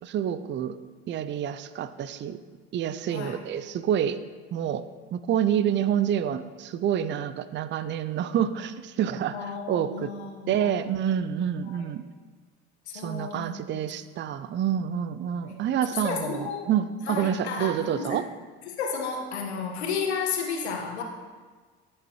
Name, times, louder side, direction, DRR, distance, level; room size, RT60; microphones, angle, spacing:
voice 1, 0.0-0.8 1.1-2.4 2.7-4.2 4.5-4.8 5.1-10.1 10.5-12.0 12.9-18.2, right 9 dB, 35° right, 13 dB, 0.5 m, -28 dB
voice 2, 9.3-10.8 11.7-11.9 12.9-13.6 14.7-14.8 15.4-15.6 15.9-16.7 17.0-18.2 18.6-21.0, left 5 dB, 80° left, 1 dB, 1.4 m, -32 dB
14.0 x 6.4 x 3.1 m, 1.5 s
hypercardioid pair, 65°, 32 cm